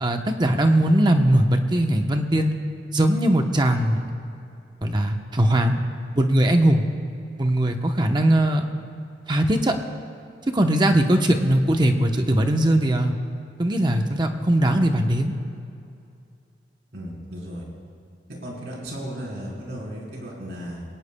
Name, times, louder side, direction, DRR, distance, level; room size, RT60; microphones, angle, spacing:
voice 1, 0.0-2.6 2.9-4.0 4.8-5.8 6.2-6.8 7.4-8.6 9.3-9.7 10.5-13.1 13.6-15.4, right 1 dB, 25° right, 5 dB, 0.8 m, -20 dB
voice 2, 16.9-17.6 18.3-20.8, equal, 65° right, -3 dB, 3.7 m, -35 dB
21.5 x 18.0 x 2.2 m, 2.5 s
head